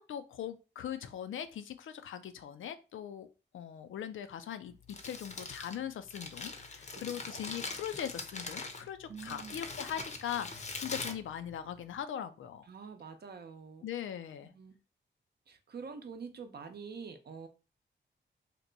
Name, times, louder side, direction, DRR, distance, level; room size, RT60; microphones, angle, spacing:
voice 1, 0.0-3.3 3.5-12.7 13.8-14.5, left 9 dB, 90° left, 10 dB, 0.4 m, -40 dB
Crumpling crinkling, 4.7-12.0, left 3 dB, 35° left, 0.6 m, -43 dB
voice 2, 7.0-7.4 9.1-9.6 12.7-13.9 14.4-14.8 15.5-17.5, right 5 dB, 55° right, 7 dB, 0.6 m, -46 dB
2.9 x 2.2 x 3.8 m, 0.31 s
cardioid pair, 85°, 20 cm